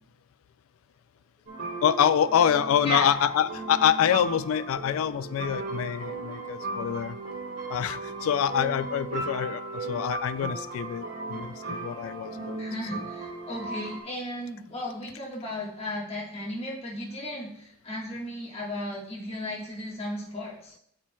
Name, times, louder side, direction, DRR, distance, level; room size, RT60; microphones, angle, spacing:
sound 1, 1.5-14.0, right 3 dB, 65° right, 2.6 m, -37 dB
voice 1, 1.8-7.2 7.7-9.6 9.9-11.0 11.3-12.6 12.9-13.0, left 8 dB, 90° left, 14 dB, 0.3 m, -25 dB
voice 2, 12.6-20.7, left 1 dB, 30° left, -4 dB, 1.5 m, -35 dB
13.0 x 4.4 x 2.3 m, 0.69 s
head